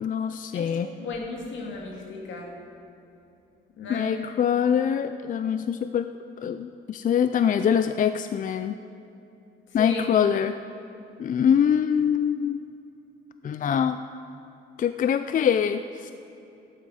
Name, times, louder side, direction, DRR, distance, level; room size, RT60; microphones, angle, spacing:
voice 1, 0.0-0.9 3.9-6.1 6.4-8.8 9.7-10.6 11.2-12.6 13.4-14.0 14.8-16.1, left 8 dB, 40° left, 10 dB, 0.4 m, -24 dB
voice 2, 0.5-2.6 3.8-4.2 9.8-10.1, left 4 dB, 75° left, 0 dB, 2.3 m, -35 dB
13.5 x 11.0 x 4.9 m, 2.8 s
cardioid pair, 90°, 20 cm